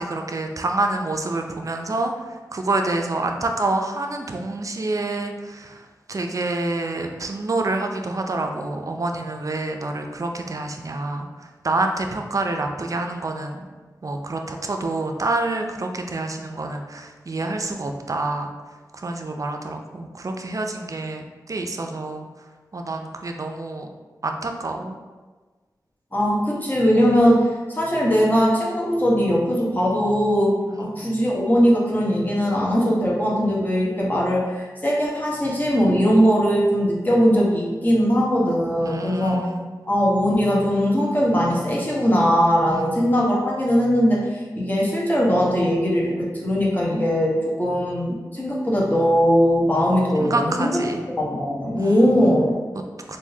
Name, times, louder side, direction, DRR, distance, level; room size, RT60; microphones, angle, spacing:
voice 1, 0.0-13.7 14.0-18.5 18.9-22.3 22.7-23.9 24.2-25.0 30.7-31.1 38.8-39.6 42.6-43.0 50.2-51.0 51.7-52.1 52.7-53.2, right 2 dB, 50° right, 4 dB, 0.4 m, -27 dB
voice 2, 26.1-39.5 39.9-50.9 51.2-52.6, equal, 25° left, -5 dB, 1.0 m, -20 dB
3.6 x 2.7 x 2.7 m, 1.3 s
cardioid pair, 40°, 7 cm